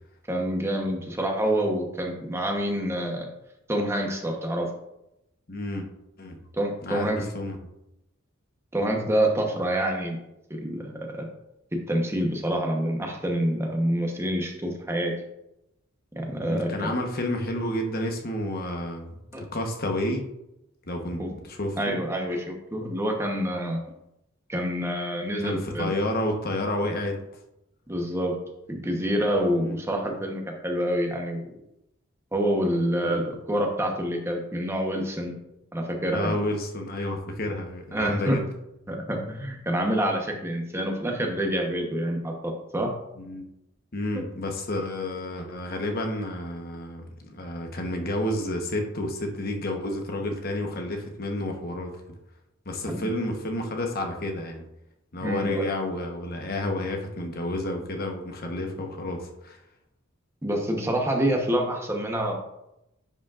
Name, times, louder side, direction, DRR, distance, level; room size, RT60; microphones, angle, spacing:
voice 1, 0.3-3.3 3.7-4.7 6.5-7.2 8.7-10.2 10.5-11.3 11.7-15.1 16.2-16.9 19.3-19.4 21.2-21.3 21.8-23.8 24.5-26.0 27.9-28.4 28.7-31.4 32.3-35.4 35.7-36.4 37.9-38.4 38.9-42.9 44.1-44.2 52.9-53.1 55.2-55.6 60.4-62.4, right 1 dB, 15° right, 1 dB, 1.0 m, -27 dB
voice 2, 5.5-5.9 6.2-6.4 6.8-7.6 16.4-20.2 20.9-22.0 23.4-23.6 25.4-27.2 29.6-29.7 33.0-33.2 36.1-38.4 43.2-43.5 43.9-52.0 52.7-54.6 55.1-59.6, left 1 dB, 50° left, 3 dB, 1.1 m, -30 dB
10.0 x 5.1 x 2.5 m, 0.86 s
head